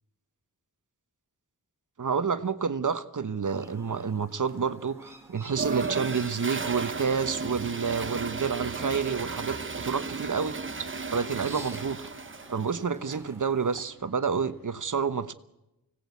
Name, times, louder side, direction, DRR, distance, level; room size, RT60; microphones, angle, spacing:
voice 1, 2.0-12.1 12.5-15.3, right 6 dB, 55° right, 12 dB, 1.1 m, -29 dB
Chirp tweet, 3.4-13.8, right 1 dB, 5° right, 2.6 m, -51 dB
Toilet flush, 5.5-12.8, right 4 dB, 35° right, 0.9 m, -35 dB
sound 1, 7.7-14.8, left 2 dB, 65° left, 4.5 m, -56 dB
24.5 x 18.0 x 8.4 m, 0.94 s
wide cardioid pair, 75°, 36 cm